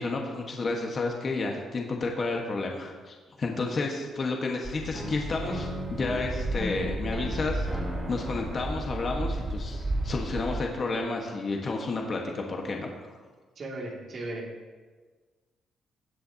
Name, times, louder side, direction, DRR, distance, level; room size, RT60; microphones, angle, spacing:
voice 1, 0.0-7.7 8.1-12.9, left 3 dB, 45° left, 1 dB, 1.4 m, -31 dB
sound 1, 4.6-10.6, right 2 dB, 25° right, 3.1 m, -33 dB
sound 2, 4.9-10.9, equal, ahead, 2.7 m, -39 dB
voice 2, 13.6-14.5, right 2 dB, 50° right, -2 dB, 2.5 m, -36 dB
16.5 x 7.6 x 2.9 m, 1.4 s
cardioid pair, 90°, 0 cm